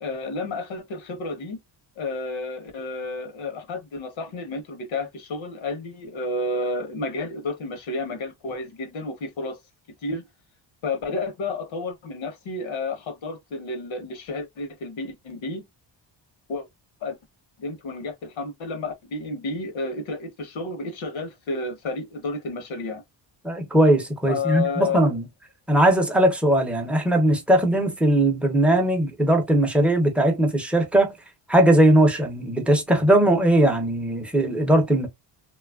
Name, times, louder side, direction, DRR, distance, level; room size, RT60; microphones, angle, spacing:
voice 1, 0.0-1.6 2.0-9.6 10.0-10.2 10.8-15.6 16.5-16.7 17.0-17.2 17.6-23.0 24.3-25.0, left 3 dB, 75° left, 0.9 m, -31 dB
voice 2, 23.4-25.2 25.7-31.1 31.5-35.1, right 1 dB, 5° right, 0.5 m, -19 dB
3.0 x 2.3 x 2.2 m
wide cardioid pair, 165°, 47 cm